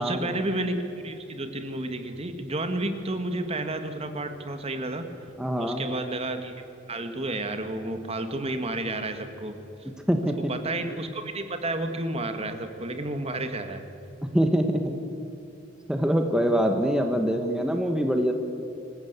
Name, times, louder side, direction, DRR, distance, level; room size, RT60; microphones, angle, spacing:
voice 1, 0.0-5.1 5.6-6.6 6.9-9.6 10.5-13.8, right 2 dB, 30° right, 7 dB, 1.6 m, -31 dB
voice 2, 5.4-5.8 10.1-10.5 14.3-14.9 15.9-18.3, equal, 5° right, 4 dB, 1.2 m, -24 dB
25.5 x 15.0 x 8.2 m, 2.8 s
head